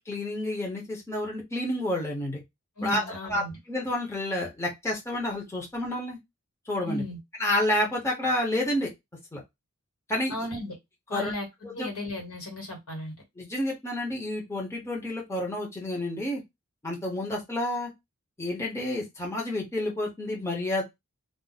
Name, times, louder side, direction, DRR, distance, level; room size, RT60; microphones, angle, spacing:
voice 1, 0.1-2.4 2.8-6.2 6.7-7.0 7.4-8.9 9.3-9.4 10.1-10.3 11.1-11.3 11.6-11.9 13.4-16.4 16.8-17.9 18.4-20.8, left 1 dB, 10° left, -2 dB, 0.8 m, -29 dB
voice 2, 2.8-3.6 6.8-7.2 10.3-10.8 11.1-11.5 11.7-13.1, left 1 dB, 75° left, 2 dB, 1.5 m, -35 dB
2.5 x 2.1 x 3.9 m, 0.19 s
head